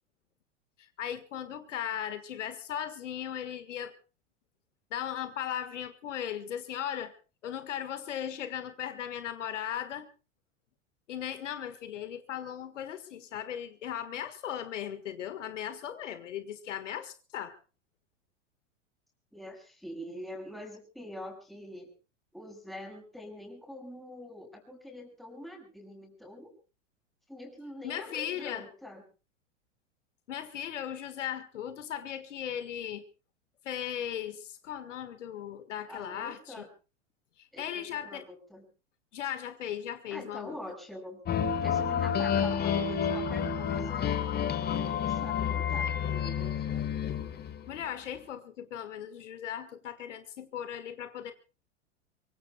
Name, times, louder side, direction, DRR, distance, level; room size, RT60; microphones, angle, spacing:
voice 1, 0.8-3.9 4.9-7.1 7.4-10.1 11.1-17.6 27.8-28.7 30.3-33.0 33.6-36.6 37.4-38.3 39.1-40.6 47.7-51.3, left 10 dB, 75° left, 10 dB, 1.8 m, -37 dB
voice 2, 19.3-21.9 22.3-26.5 27.3-29.0 35.9-36.7 37.5-38.7 40.1-41.2 41.6-44.1 44.6-46.9, left 1 dB, ahead, 2 dB, 6.1 m, -45 dB
sound 1, 41.3-47.8, left 8 dB, 25° left, 1.7 m, -30 dB
24.0 x 23.5 x 2.3 m, 0.34 s
hypercardioid pair, 95°, 37 cm